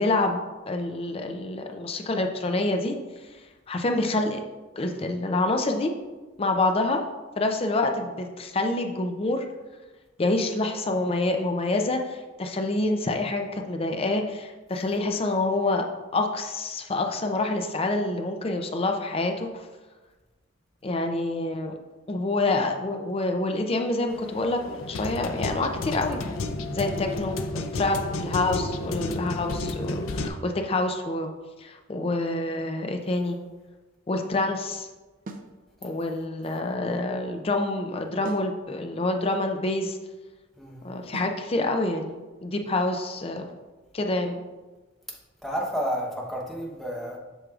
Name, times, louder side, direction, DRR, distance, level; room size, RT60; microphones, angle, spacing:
voice 1, 0.0-2.9 3.7-4.4 4.8-5.9 6.4-7.1 7.4-9.4 10.2-15.8 16.1-19.7 20.8-21.7 22.1-26.2 26.7-31.3 31.6-33.4 34.1-34.9 35.8-40.0 40.8-43.5 43.9-44.4, left 2 dB, 30° left, 4 dB, 0.5 m, -27 dB
sound 1, 24.1-30.3, left 2 dB, 90° left, 0.5 m, -31 dB
sound 2, 35.3-35.6 38.2-38.6 41.1-41.4, right 2 dB, 45° right, 0.5 m, -39 dB
voice 2, 40.6-40.9 45.4-47.2, equal, ahead, -2 dB, 1.0 m, -31 dB
7.9 x 6.2 x 2.4 m, 1.2 s
head